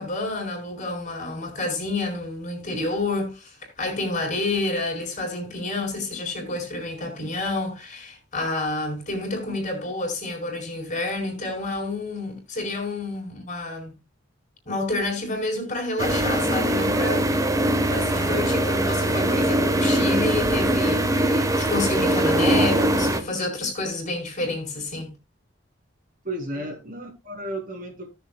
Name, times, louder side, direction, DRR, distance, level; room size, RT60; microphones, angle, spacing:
voice 1, 0.0-13.9 14.7-17.3 17.9-25.1 26.6-26.7, left 2 dB, 40° left, 4.3 m, -29 dB
sound 1, 16.0-23.2, right 1 dB, 20° right, 1.2 m, -22 dB
voice 2, 26.2-28.1, right 1 dB, 50° right, 3.6 m, -33 dB
17.0 x 7.0 x 2.3 m
head